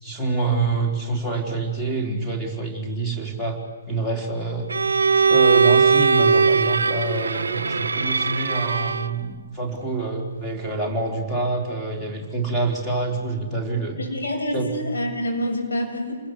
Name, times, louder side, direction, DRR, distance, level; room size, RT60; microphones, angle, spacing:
voice 1, 0.0-3.6 3.9-4.7 5.3-14.0 14.5-14.7, right 3 dB, 5° left, 0 dB, 4.2 m, -26 dB
Bowed string instrument, 4.7-9.2, right 5 dB, 65° right, 0.8 m, -19 dB
voice 2, 14.0-16.2, equal, 60° left, 0 dB, 7.9 m, -27 dB
29.0 x 21.0 x 7.9 m, 1.4 s
figure-of-eight pair, 125°, 0 cm